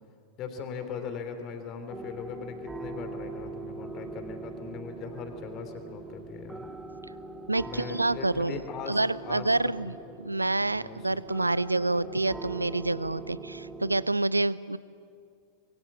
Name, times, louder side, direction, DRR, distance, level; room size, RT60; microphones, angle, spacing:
voice 1, 0.4-6.6 7.6-9.0 9.2-9.5 10.1-10.2 10.6-11.2, left 6 dB, 35° left, 7 dB, 3.3 m, -40 dB
sound 1, 1.9-14.1, right 3 dB, 10° right, 1.9 m, -42 dB
voice 2, 7.5-8.5 8.9-14.8, right 2 dB, 85° right, 20 dB, 0.5 m, -28 dB
26.5 x 23.0 x 7.4 m, 2.4 s
figure-of-eight pair, 90°, 0 cm